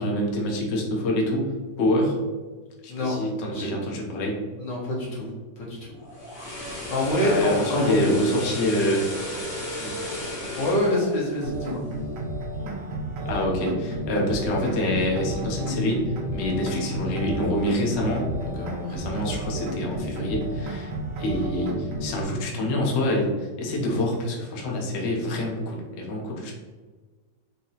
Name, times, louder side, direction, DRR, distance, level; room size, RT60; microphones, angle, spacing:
voice 1, 0.0-1.4 1.8-2.2 2.8-4.3 7.2-9.0 9.8-10.0 13.2-20.9 21.2-26.5, left 1 dB, 55° left, -2 dB, 0.8 m, -26 dB
voice 2, 4.6-5.3 5.6-5.9 6.6-7.9 10.6-11.8, left 1 dB, 75° left, -6 dB, 2.0 m, -26 dB
sound 1, 5.9-12.1 12.5-12.7, left 1 dB, 30° left, 1.3 m, -34 dB
sound 2, 11.4-22.2, right 1 dB, 80° right, 1.4 m, -32 dB
4.7 x 2.8 x 2.8 m, 1.4 s
omnidirectional pair, 1.9 m